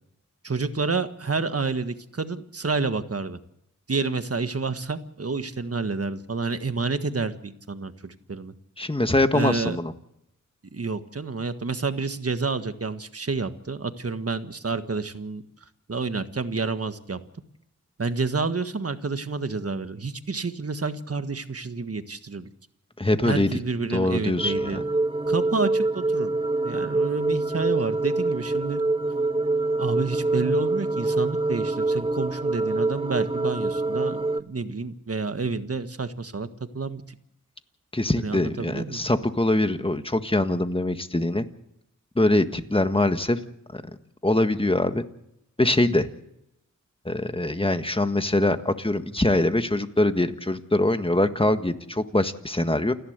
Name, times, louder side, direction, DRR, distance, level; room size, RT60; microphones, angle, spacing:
voice 1, 0.4-3.4 3.9-8.5 9.3-9.8 10.7-15.4 15.9-17.2 18.0-22.5 23.2-24.8 25.3-26.3 26.6-28.8 29.8-36.5 36.7-37.0 38.2-39.0, right 4 dB, 45° right, 10 dB, 1.6 m, -29 dB
voice 2, 8.8-9.9 23.0-23.5 23.9-24.8 37.9-41.4 42.1-43.4 43.7-43.8 44.2-45.0 45.6-46.1 47.0-52.9, left 1 dB, 15° left, 9 dB, 1.6 m, -23 dB
sound 1, 24.4-34.4, right 2 dB, 15° right, 0.8 m, -25 dB
29.0 x 11.5 x 8.2 m, 0.81 s
wide cardioid pair, 60°, 32 cm